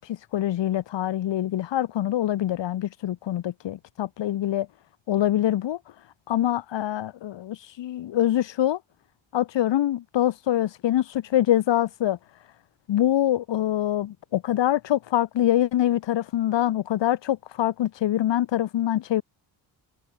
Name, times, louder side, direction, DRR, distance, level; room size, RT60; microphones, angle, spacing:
voice 1, 0.0-4.7 5.1-5.8 6.3-8.8 9.3-12.2 12.9-19.2, left 12 dB, 80° left, 6.2 m, -24 dB
cardioid pair, 170°, 43 cm